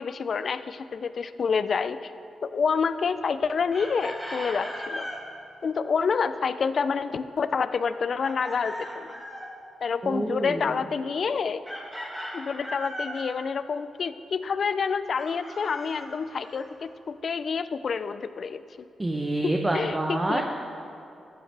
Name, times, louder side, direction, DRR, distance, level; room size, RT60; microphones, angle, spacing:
voice 1, 0.0-2.1 2.4-5.1 5.6-9.2 9.8-11.6 12.3-18.6 19.4-20.4, left 5 dB, 55° left, 13 dB, 0.4 m, -28 dB
Chicken rooster, 3.7-5.2 8.2-9.5 11.6-13.3 15.2-16.7, equal, 5° right, 2.0 m, -37 dB
voice 2, 10.0-10.7 19.0-20.4, right 1 dB, 20° right, 2 dB, 0.8 m, -27 dB
14.5 x 9.2 x 3.3 m, 2.5 s
cardioid pair, 85°, 0 cm